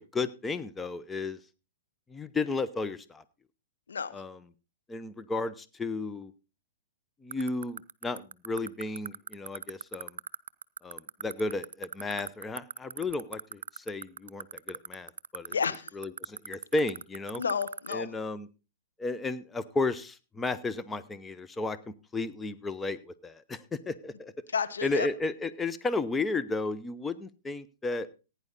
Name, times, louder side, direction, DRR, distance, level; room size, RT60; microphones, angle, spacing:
voice 1, 0.0-1.4 2.1-3.2 4.1-4.4 4.9-6.3 7.2-10.1 10.8-15.6 16.0-17.4 17.9-18.5 19.0-21.8 22.1-24.3 24.8-28.1, left 3 dB, 10° left, 13 dB, 0.7 m, -33 dB
sound 1, 7.3-17.9, right 7 dB, 80° right, 0.5 m, -36 dB
voice 2, 15.5-15.9 17.4-18.1 24.5-25.1, left 6 dB, 85° left, 10 dB, 1.2 m, -31 dB
15.5 x 9.6 x 4.1 m, 0.32 s
hypercardioid pair, 120°, 0 cm